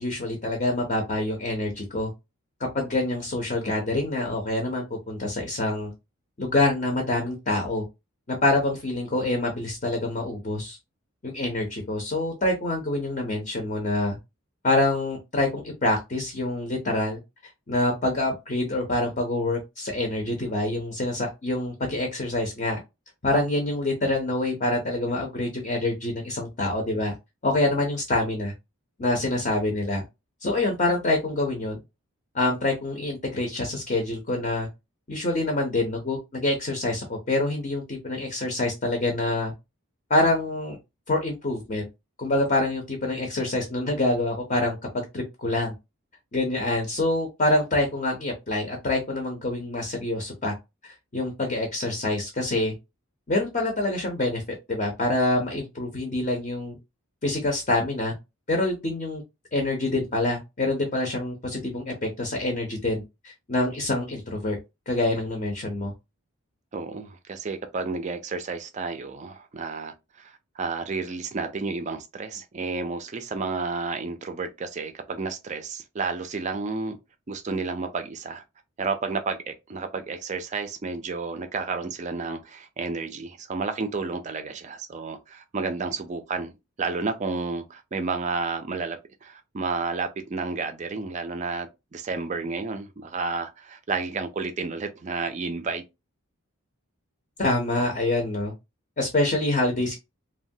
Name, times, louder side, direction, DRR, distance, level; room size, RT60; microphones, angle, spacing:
voice 1, 0.0-2.1 2.6-5.9 6.4-7.8 8.3-10.8 11.2-14.2 14.6-17.2 17.7-22.8 23.2-27.1 27.4-28.5 29.0-30.0 30.4-31.8 32.3-34.7 35.1-39.5 40.1-40.8 41.1-41.8 42.2-44.8 45.1-45.7 46.3-50.5 50.8-52.7 53.3-54.4 54.7-56.8 57.2-58.1 58.5-59.2 59.5-64.6 64.9-65.9 97.4-98.5 99.0-100.0, left 2 dB, 35° left, 0.6 m, -26 dB
voice 2, 66.7-77.0 77.3-78.4 78.8-86.5 86.8-95.8, right 4 dB, 30° right, 0.3 m, -31 dB
3.0 x 2.2 x 2.6 m
head